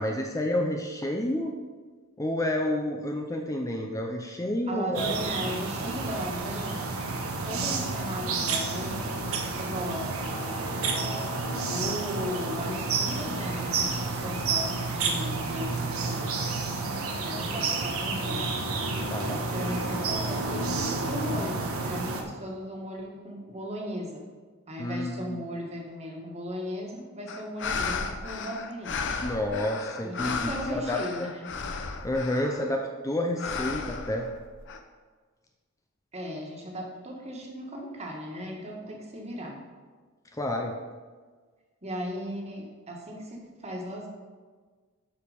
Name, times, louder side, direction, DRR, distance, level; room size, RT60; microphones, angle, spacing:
voice 1, 0.0-1.5 2.2-5.1 19.1-19.4 24.8-25.4 29.2-31.0 32.0-34.3 40.3-40.7, left 1 dB, 15° left, 2 dB, 0.6 m, -29 dB
voice 2, 4.7-6.9 7.4-10.3 11.7-16.4 17.2-18.7 19.5-24.2 24.7-29.0 30.0-31.5 36.1-39.6 41.8-44.1, equal, 30° right, 0 dB, 1.7 m, -37 dB
sound 1, 5.0-22.2, right 3 dB, 85° right, 1.2 m, -30 dB
sound 2, 27.3-32.8 33.4-34.8, left 5 dB, 60° left, 0.8 m, -34 dB
11.5 x 5.1 x 5.1 m, 1.5 s
head